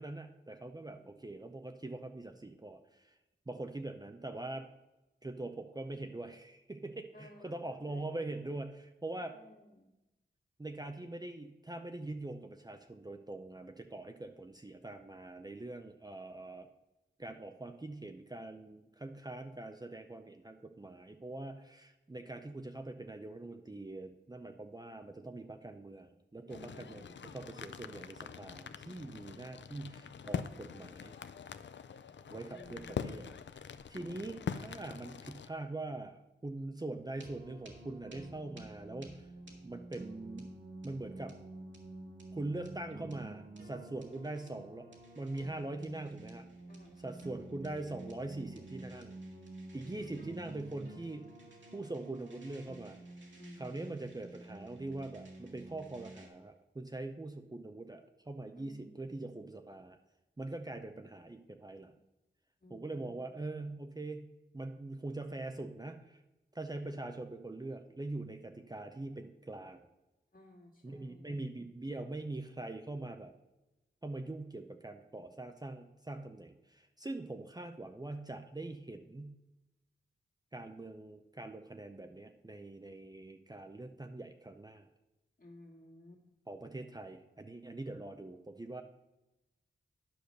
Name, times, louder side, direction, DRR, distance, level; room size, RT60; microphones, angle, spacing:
voice 1, 0.0-3.2 3.5-4.7 5.2-9.3 10.6-16.7 17.2-31.2 32.3-33.3 33.5-33.6 33.9-39.3 39.6-40.5 40.8-41.3 42.3-44.9 45.2-46.5 47.0-49.2 49.7-51.3 51.7-53.0 53.6-60.0 60.4-61.9 62.7-64.3 64.5-66.2 66.5-69.9 70.8-73.3 74.0-79.4 80.5-84.9 86.5-88.8, right 2 dB, 20° right, 6 dB, 0.6 m, -43 dB
voice 2, 0.8-1.6 7.1-8.3 9.1-9.9 26.5-27.2 32.5-33.3 46.7-47.1 49.9-50.4 53.4-54.1 58.5-59.3 62.6-63.3 70.3-71.4 85.4-86.2, left 1 dB, 45° left, 1 dB, 2.2 m, -57 dB
sound 1, 26.5-35.5, left 7 dB, 65° left, 0.5 m, -44 dB
sound 2, 37.2-56.3, right 2 dB, 70° right, 2.0 m, -50 dB
10.5 x 5.0 x 6.6 m, 0.99 s
cardioid pair, 55°, 20 cm